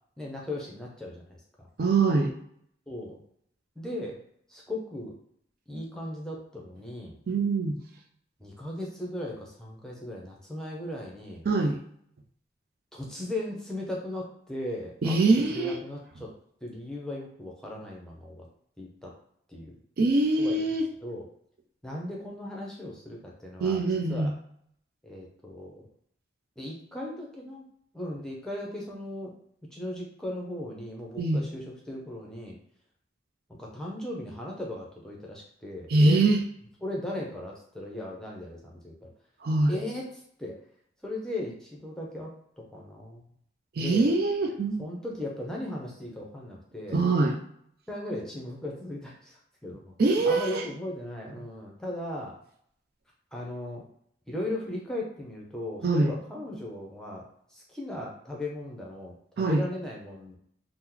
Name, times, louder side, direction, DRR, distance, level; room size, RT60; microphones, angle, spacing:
voice 1, 0.2-1.7 2.9-3.2 3.8-4.2 4.5-5.1 5.7-7.2 8.4-11.4 12.9-15.2 15.5-16.3 16.6-18.5 18.8-19.1 19.5-19.7 20.4-20.6 21.0-21.3 21.8-23.8 24.1-24.3 25.0-25.9 26.6-27.6 27.9-29.3 29.7-32.6 33.6-36.2 36.8-39.1 39.7-40.1 40.4-40.6 41.0-43.2 43.8-44.1 44.8-47.0 47.9-49.9 50.2-52.3 53.3-53.9 54.3-57.2 57.5-60.4, left 1 dB, 5° left, -3 dB, 0.6 m, -37 dB
voice 2, 1.8-2.3 7.3-7.8 11.5-11.8 15.0-15.7 20.0-20.8 23.6-24.3 31.2-31.4 35.9-36.4 39.4-39.8 43.8-44.8 46.9-47.4 50.0-50.6 55.8-56.1 59.4-59.6, right 3 dB, 50° right, 2 dB, 0.4 m, -23 dB
2.9 x 2.0 x 3.7 m, 0.68 s
head